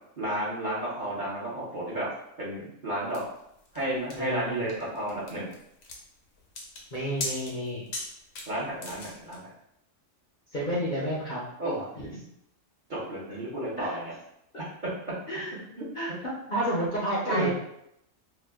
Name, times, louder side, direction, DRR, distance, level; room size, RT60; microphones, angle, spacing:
voice 1, 0.2-2.1 2.4-3.2 3.7-5.5 8.5-9.5 11.6-11.9 12.9-14.1 14.6-14.7 15.6-15.9 17.3-17.5, right 1 dB, 40° right, -8 dB, 1.0 m, -32 dB
sound 1, 3.1-9.4, left 2 dB, 70° left, 1.0 m, -39 dB
voice 2, 4.1-4.7 6.9-7.8 10.5-11.4 11.9-12.1 13.3-13.4 13.8-14.0 15.3-15.5 15.9-17.5, equal, 45° left, -7 dB, 0.7 m, -30 dB
2.8 x 2.3 x 3.4 m, 0.76 s
omnidirectional pair, 1.4 m